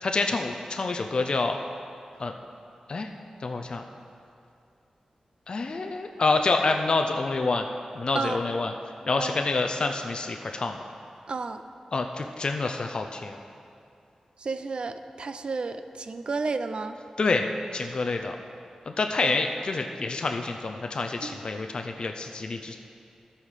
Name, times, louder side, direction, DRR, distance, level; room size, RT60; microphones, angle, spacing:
voice 1, 0.0-1.6 2.2-2.3 2.9-3.1 3.4-3.8 5.5-7.7 7.9-8.7 9.1-10.8 11.9-13.4 17.2-17.5 17.7-18.4 18.9-22.8, left 3 dB, 45° left, 4 dB, 0.4 m, -27 dB
voice 2, 11.3-11.6 14.4-17.0 19.2-19.3 21.2-21.4, right 4 dB, 55° right, 10 dB, 0.4 m, -32 dB
13.0 x 5.6 x 4.9 m, 2.5 s
wide cardioid pair, 115°, 2 cm